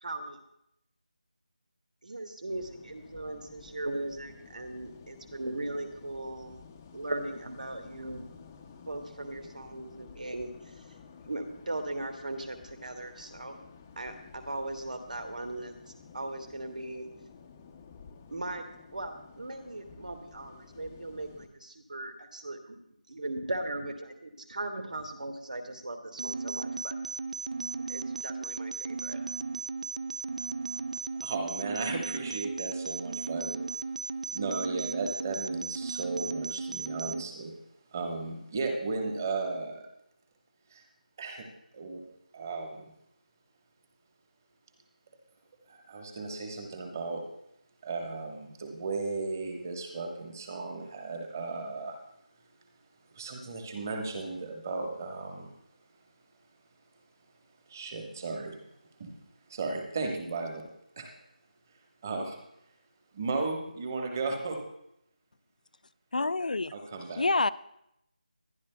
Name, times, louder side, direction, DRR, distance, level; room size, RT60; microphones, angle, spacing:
voice 1, 0.0-0.4 2.0-6.6 6.9-8.3 8.9-10.9 11.2-13.6 14.0-15.7 16.1-17.0 18.3-18.6 18.9-22.8 23.1-26.9 27.9-29.2, right 2 dB, 65° right, 6 dB, 1.7 m, -38 dB
sound 1, 2.5-21.5, left 5 dB, 10° left, 0.5 m, -52 dB
sound 2, 26.2-37.2, right 4 dB, 50° right, 0.4 m, -36 dB
voice 2, 31.2-33.6 34.3-37.5 37.9-39.9 40.7-40.8 41.2-41.5 41.7-42.0 42.3-42.9 45.7-47.3 47.8-52.0 53.1-55.5 57.7-58.6 59.0-59.2 59.5-60.7 61.0-61.1 62.0-62.4 63.1-64.6 66.7-67.2, right 3 dB, 20° right, 3 dB, 1.2 m, -35 dB
voice 3, 66.1-66.7 67.2-67.5, left 3 dB, 70° left, 14 dB, 0.4 m, -27 dB
21.5 x 10.5 x 2.2 m, 0.78 s
figure-of-eight pair, 175°, 5 cm